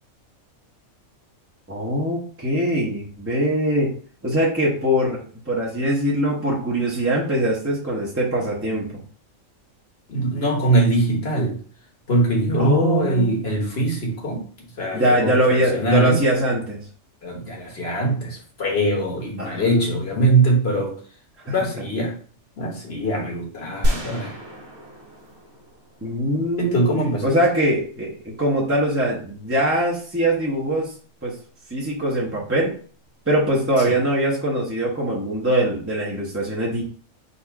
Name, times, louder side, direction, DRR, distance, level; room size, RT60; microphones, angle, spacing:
voice 1, 1.7-3.9 4.2-8.9 12.6-13.4 14.9-16.8 19.4-19.8 21.5-21.6 26.0-27.0 27.2-30.9 31.2-31.4 31.7-32.7 33.3-36.8, right 1 dB, 10° right, -5 dB, 0.9 m, -22 dB
voice 2, 10.1-11.6 12.1-14.5 14.8-16.2 17.2-21.0 21.5-22.2 22.6-24.4 26.3-27.3 33.9-34.0, right 2 dB, 50° left, -1 dB, 1.5 m, -22 dB
sound 1, 23.8-26.7, equal, 80° right, 1.6 m, -28 dB
4.0 x 2.6 x 4.6 m, 0.44 s
omnidirectional pair, 1.4 m